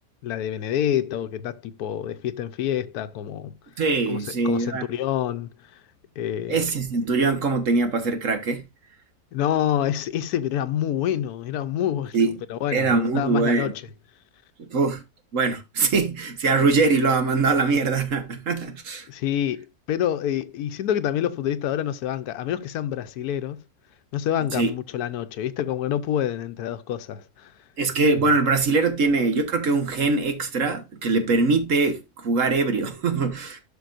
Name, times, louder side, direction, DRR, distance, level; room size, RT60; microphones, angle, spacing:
voice 1, 0.2-3.5 4.1-5.8 6.2-6.6 9.3-12.2 12.5-13.8 19.1-23.6 24.1-27.5 28.1-28.3, left 10 dB, 90° left, 1.2 m, -27 dB
voice 2, 3.8-4.8 6.5-8.6 12.1-12.3 12.7-13.7 14.7-15.0 15.3-19.1 24.5-24.7 27.8-33.6, right 3 dB, 60° right, 1.5 m, -22 dB
11.5 x 5.7 x 2.5 m
omnidirectional pair, 1.6 m